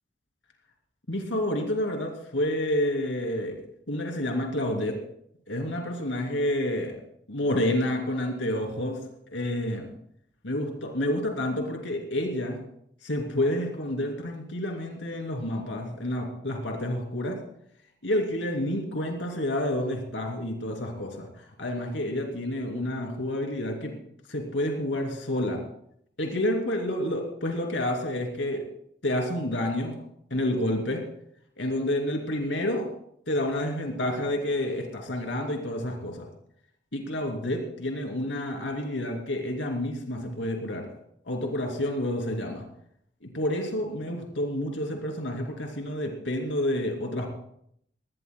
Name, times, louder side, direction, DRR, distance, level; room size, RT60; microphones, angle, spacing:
voice 1, 1.1-3.6 3.9-5.0 5.5-7.0 7.3-9.0 9.3-9.9 10.4-12.6 13.0-17.4 18.0-21.3 21.6-23.9 24.3-25.6 26.2-28.6 29.0-30.0 30.3-31.0 31.6-32.9 33.3-36.3 36.9-40.9 41.2-42.6 43.3-47.3, left 1 dB, 80° left, 2 dB, 2.8 m, -29 dB
20.0 x 18.5 x 2.2 m, 0.70 s
head